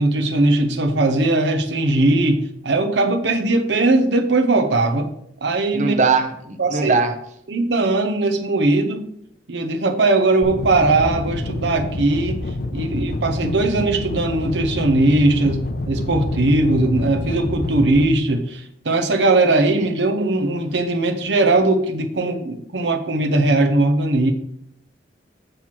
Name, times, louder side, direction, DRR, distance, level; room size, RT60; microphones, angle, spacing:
voice 1, 0.0-5.1 5.4-5.9 6.6-7.0 7.5-9.1 9.5-12.4 12.7-24.3, right 2 dB, 75° right, 5 dB, 0.8 m, -19 dB
voice 2, 5.7-7.1, right 4 dB, 45° right, 5 dB, 0.8 m, -20 dB
sound 1, 10.4-18.0, left 2 dB, 60° left, 0.7 m, -27 dB
7.9 x 5.9 x 4.5 m, 0.72 s
head